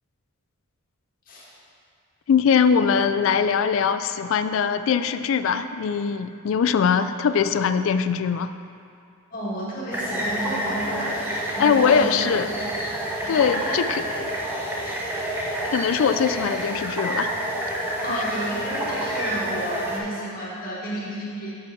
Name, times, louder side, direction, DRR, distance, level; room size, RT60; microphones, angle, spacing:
voice 1, 2.3-8.5 11.6-12.5 13.3-14.3 15.6-17.3 18.1-18.2, left 6 dB, 65° left, 11 dB, 0.3 m, -22 dB
voice 2, 9.3-11.2 11.5-12.1 12.5-12.6 13.2-13.8 14.1-14.7 18.0-21.5, right 1 dB, 40° left, -6 dB, 1.9 m, -32 dB
sound 1, 9.9-20.0, right 1 dB, 10° right, 0.9 m, -28 dB
7.2 x 4.7 x 6.1 m, 2.4 s
head